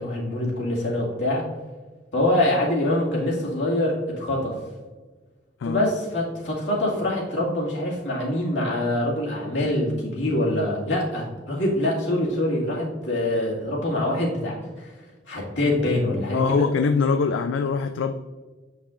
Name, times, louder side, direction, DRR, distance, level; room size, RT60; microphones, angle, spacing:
voice 1, 0.0-1.4 2.1-4.6 5.6-14.9 15.3-16.7, left 1 dB, 70° left, -4 dB, 2.1 m, -24 dB
voice 2, 16.3-18.1, left 5 dB, 85° left, 8 dB, 0.4 m, -23 dB
8.2 x 5.7 x 2.5 m, 1.3 s
head